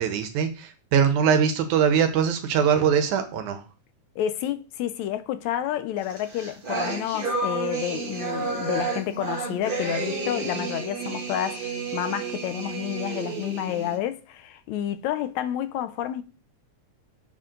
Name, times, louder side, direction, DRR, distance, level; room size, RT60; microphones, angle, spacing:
voice 1, 0.0-3.6, right 7 dB, 85° right, 2.5 m, -22 dB
voice 2, 4.2-16.2, left 11 dB, 80° left, 1.9 m, -30 dB
sound 1, 6.1-14.0, right 3 dB, 40° right, 0.8 m, -31 dB
7.4 x 6.0 x 3.8 m
omnidirectional pair, 3.3 m